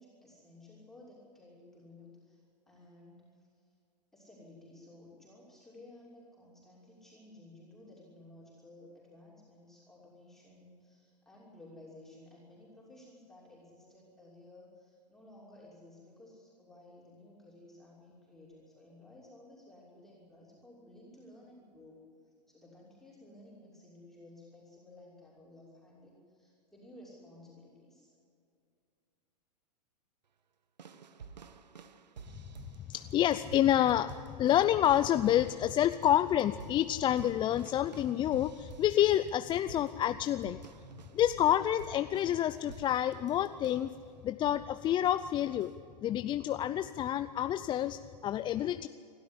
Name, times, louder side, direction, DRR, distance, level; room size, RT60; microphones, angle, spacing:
voice 1, 0.0-3.7 4.1-28.1, left 1 dB, ahead, -6 dB, 6.0 m, -55 dB
sound 1, 30.8-44.0 44.4-44.8 45.6-45.7, right 5 dB, 80° right, 1.1 m, -52 dB
voice 2, 32.9-40.6 41.1-43.9 44.2-45.7 46.0-48.9, left 11 dB, 20° left, 12 dB, 0.5 m, -28 dB
27.0 x 12.5 x 10.0 m, 2.4 s
hypercardioid pair, 105°, 21 cm